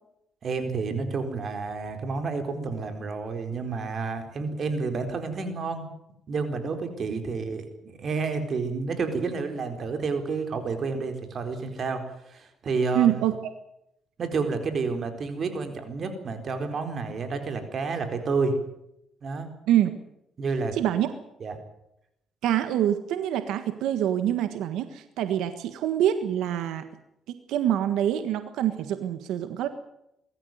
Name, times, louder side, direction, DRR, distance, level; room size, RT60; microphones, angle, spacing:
voice 1, 0.4-5.9 6.3-13.2 14.2-18.5 19.2-19.5 20.4-20.8 21.4-21.6, right 4 dB, 50° right, 7 dB, 4.2 m, -30 dB
voice 2, 12.9-13.4 19.7-19.9 20.7-21.1 22.4-26.8 27.5-29.7, right 11 dB, 90° right, 10 dB, 1.5 m, -25 dB
23.5 x 13.5 x 9.4 m, 0.81 s
cardioid pair, 90°, 0 cm